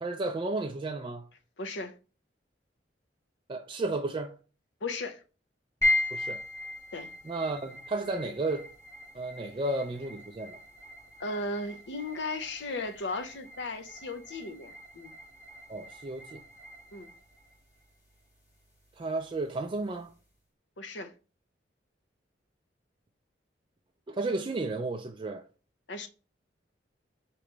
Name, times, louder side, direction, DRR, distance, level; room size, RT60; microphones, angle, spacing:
voice 1, 0.0-1.3 3.5-4.4 6.1-6.4 7.2-8.7 9.1-10.6 15.7-16.4 19.0-20.1 24.1-25.5, right 2 dB, 25° right, 0.3 m, -33 dB
voice 2, 1.6-1.9 4.8-5.2 6.9-7.1 11.2-15.1 16.9-17.1 20.8-21.1 25.9-26.1, left 2 dB, 75° left, 0.7 m, -36 dB
sound 1, 5.8-20.3, left 1 dB, 20° left, 1.7 m, -38 dB
4.9 x 3.1 x 3.2 m
head